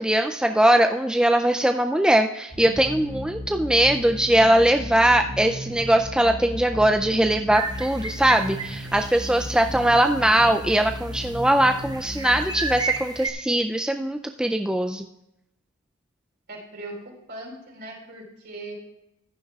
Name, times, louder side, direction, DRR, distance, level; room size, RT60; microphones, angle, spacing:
voice 1, 0.0-15.1, right 1 dB, 5° right, 5 dB, 0.3 m, -21 dB
sound 1, 2.5-13.2, left 1 dB, 50° left, 4.5 m, -36 dB
sound 2, 7.5-9.4 9.8-9.9 10.4-11.2 11.8-13.3, right 4 dB, 20° right, 0.9 m, -32 dB
voice 2, 9.5-10.0 16.5-18.7, right 2 dB, 55° right, -1 dB, 4.2 m, -40 dB
15.5 x 10.5 x 2.3 m, 0.85 s
head